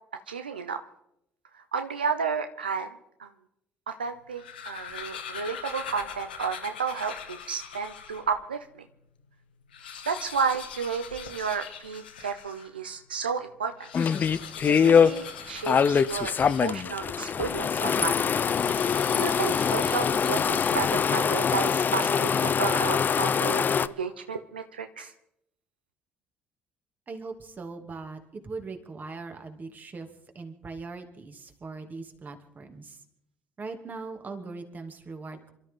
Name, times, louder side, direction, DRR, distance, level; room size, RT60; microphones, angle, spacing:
voice 1, 0.3-0.8 1.7-2.9 3.2-3.3 3.9-8.6 10.1-13.7 14.8-18.2 18.6-18.9 19.1-25.1, right 5 dB, 90° right, 8 dB, 0.6 m, -32 dB
sound 1, 4.2-8.3 8.9-9.0 9.2-9.3 9.6-12.7 13.7-17.1 18.4-21.1, left 7 dB, 85° left, 1.3 m, -42 dB
sound 2, 13.9-15.1 15.7-23.9, left 7 dB, 40° left, 0.7 m, -23 dB
voice 2, 27.1-30.1 30.3-33.0 33.6-35.5, right 4 dB, 35° right, 5 dB, 2.6 m, -40 dB
27.5 x 13.0 x 3.8 m, 0.80 s
figure-of-eight pair, 55°, 5 cm